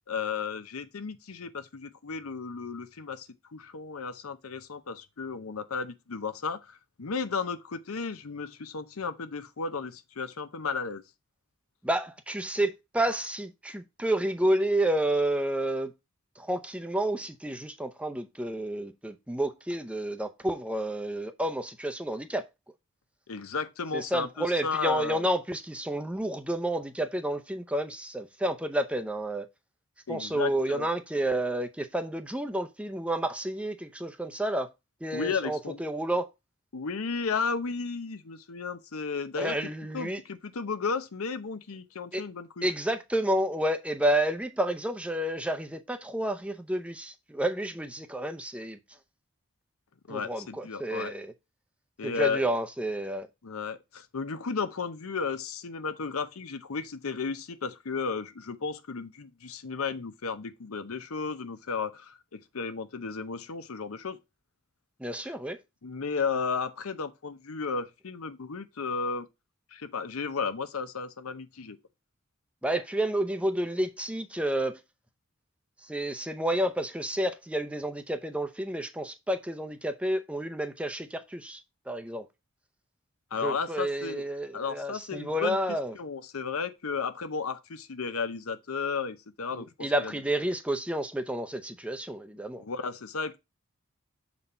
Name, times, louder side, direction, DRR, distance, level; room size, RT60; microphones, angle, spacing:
voice 1, 0.1-11.0 23.3-25.3 30.1-30.9 35.1-35.8 36.7-39.6 39.9-42.7 50.1-51.1 52.0-52.5 53.4-64.2 65.2-65.3 65.8-69.3 69.7-71.8 83.3-84.2 84.5-85.6 85.9-90.2 92.6-93.4, left 5 dB, 85° left, 0.7 m, -34 dB
voice 2, 11.8-15.9 16.4-22.4 23.9-29.5 30.1-34.7 35.0-36.3 39.4-40.2 42.1-42.2 42.6-48.8 50.1-51.3 52.0-53.3 65.0-65.6 72.6-74.8 75.9-81.6 81.9-82.2 83.4-85.9 89.6-92.6, right 1 dB, 5° right, 0.5 m, -30 dB
6.8 x 4.2 x 4.2 m
head